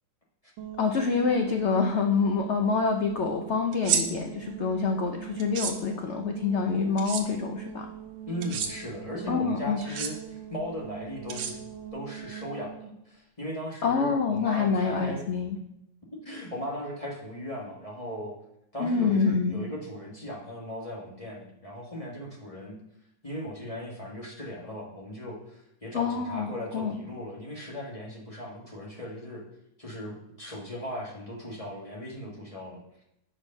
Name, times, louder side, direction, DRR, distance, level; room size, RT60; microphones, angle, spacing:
sound 1, 0.6-12.9, right 10 dB, 85° right, 1.5 m, -42 dB
voice 1, 0.8-7.9 9.3-9.8 13.8-15.6 18.8-19.6 25.9-27.0, left 5 dB, 80° left, 4 dB, 0.6 m, -26 dB
sound 2, 3.7-4.0 5.4-5.7 7.0-7.2 8.4-8.7 9.8-10.1 11.3-11.9, right 7 dB, 70° right, 1.4 m, -29 dB
voice 2, 8.3-11.5 11.9-15.3 16.1-18.4 18.7-22.8 23.2-29.4 29.8-33.0, equal, 20° left, -4 dB, 1.4 m, -38 dB
6.4 x 6.2 x 5.3 m, 0.81 s
omnidirectional pair, 2.0 m